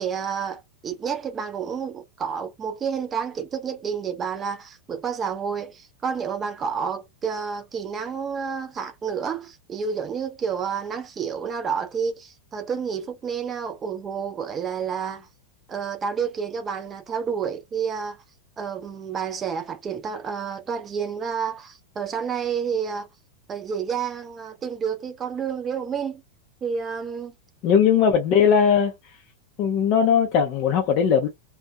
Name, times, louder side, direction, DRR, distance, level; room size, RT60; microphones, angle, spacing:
voice 1, 0.0-15.3 15.7-18.2 18.6-23.1 23.5-26.2 26.6-27.3, right 6 dB, 25° right, 0.6 m, -29 dB
voice 2, 27.6-29.1 29.6-31.3, left 7 dB, 40° left, 0.5 m, -19 dB
2.5 x 2.2 x 2.2 m
figure-of-eight pair, 90°, 0 cm